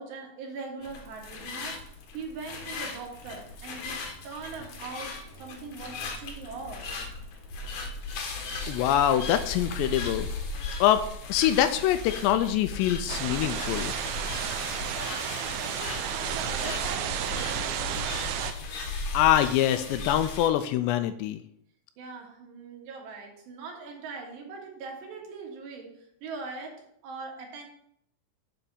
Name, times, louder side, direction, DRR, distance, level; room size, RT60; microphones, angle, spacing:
voice 1, 0.0-4.0 4.2-6.9 14.9-18.2 22.0-27.7, right 4 dB, 70° right, 1 dB, 3.9 m, -41 dB
sound 1, 0.8-20.5, left 3 dB, 65° left, 1.9 m, -37 dB
voice 2, 8.6-10.3 10.8-14.0 19.1-21.4, left 11 dB, 85° left, 10 dB, 2.6 m, -24 dB
sound 2, 13.1-18.5, right 10 dB, 90° right, 2.1 m, -32 dB
9.2 x 4.3 x 7.2 m, 0.70 s
omnidirectional pair, 5.2 m